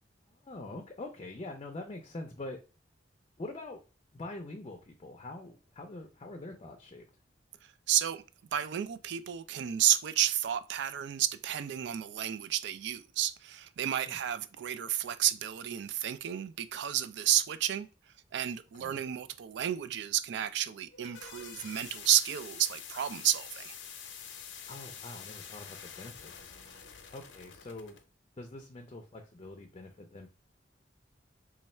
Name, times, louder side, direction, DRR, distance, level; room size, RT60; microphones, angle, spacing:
voice 1, 0.3-2.6 3.4-3.8 4.1-7.0 14.1-14.2 18.7-19.0 24.7-26.5 27.1-28.0 28.4-30.3, left 2 dB, 30° left, 0.4 m, -44 dB
voice 2, 7.9-8.2 8.5-17.9 18.3-23.7, right 11 dB, 65° right, 0.3 m, -31 dB
sound 1, 20.8-28.0, left 7 dB, 90° left, 0.6 m, -47 dB
3.2 x 2.3 x 4.2 m
head